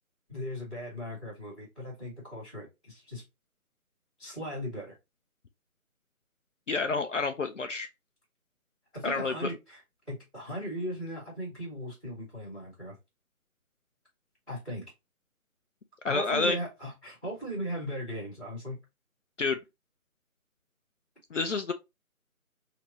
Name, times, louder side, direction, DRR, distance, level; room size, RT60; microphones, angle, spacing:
voice 1, 0.3-3.2 4.2-4.9 8.9-9.8 10.1-12.9 14.5-14.8 16.0-18.8, equal, ahead, 1.2 m, -38 dB
voice 2, 6.7-7.9 9.0-9.5 16.0-16.6 19.4-19.6 21.3-21.7, left 4 dB, 60° left, 0.5 m, -29 dB
3.4 x 2.8 x 2.8 m
figure-of-eight pair, 160°, 43 cm